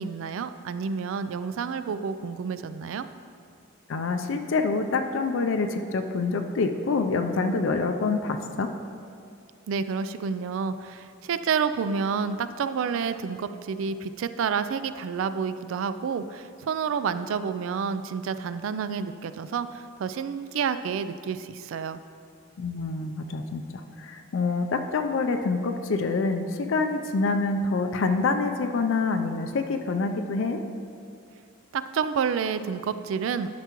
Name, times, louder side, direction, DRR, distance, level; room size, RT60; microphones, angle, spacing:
voice 1, 0.0-3.1 9.7-22.0 31.7-33.5, right 6 dB, 75° right, 12 dB, 0.3 m, -29 dB
voice 2, 3.9-8.7 22.6-30.6, left 3 dB, 70° left, 6 dB, 0.4 m, -26 dB
11.5 x 6.0 x 2.9 m, 2.4 s
head